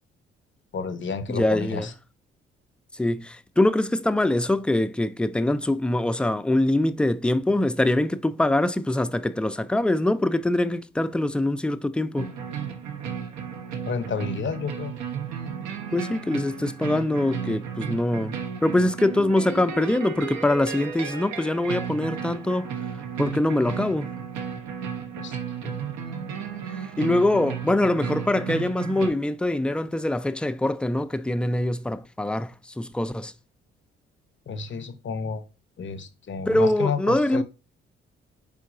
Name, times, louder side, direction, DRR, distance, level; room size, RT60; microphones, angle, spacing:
voice 1, 0.7-1.9 13.9-14.9 25.2-25.8 34.5-35.4 35.8-37.4, left 5 dB, 40° left, 0.8 m, -31 dB
voice 2, 1.3-1.9 2.9-12.3 15.9-18.4 18.6-22.7 23.2-24.1 27.0-33.3 36.5-37.4, left 1 dB, 5° left, 0.3 m, -23 dB
sound 1, 12.2-29.1, right 7 dB, 70° right, 0.8 m, -34 dB
4.4 x 3.7 x 2.4 m
hypercardioid pair, 45°, 29 cm